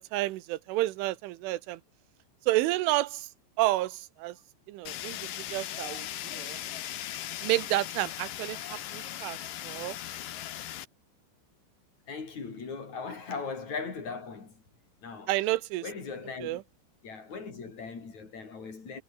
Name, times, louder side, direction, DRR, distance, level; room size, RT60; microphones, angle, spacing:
voice 1, 0.0-1.8 2.5-3.3 3.6-4.4 4.7-6.6 7.4-9.4 9.6-10.0 15.3-15.8 16.4-16.6, right 17 dB, 75° right, 3.3 m, -30 dB
Fire, 4.9-10.9, left 12 dB, 80° left, 2.0 m, -38 dB
voice 2, 12.1-14.6 15.0-15.3 15.8-16.6 17.0-19.0, left 5 dB, 35° left, 5.7 m, -39 dB
omnidirectional pair, 6.0 m